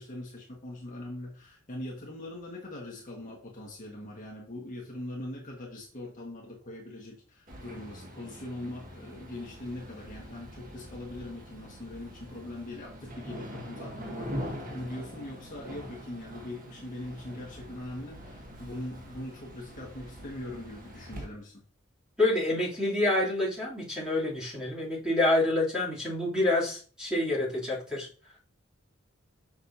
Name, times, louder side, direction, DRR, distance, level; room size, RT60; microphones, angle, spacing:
voice 1, 0.0-21.6, left 1 dB, 40° left, -3 dB, 1.6 m, -41 dB
sound 1, 7.5-21.3, equal, 40° right, 1.6 m, -43 dB
voice 2, 22.2-28.1, left 2 dB, 5° right, -7 dB, 3.0 m, -27 dB
6.6 x 6.3 x 2.7 m, 0.41 s
head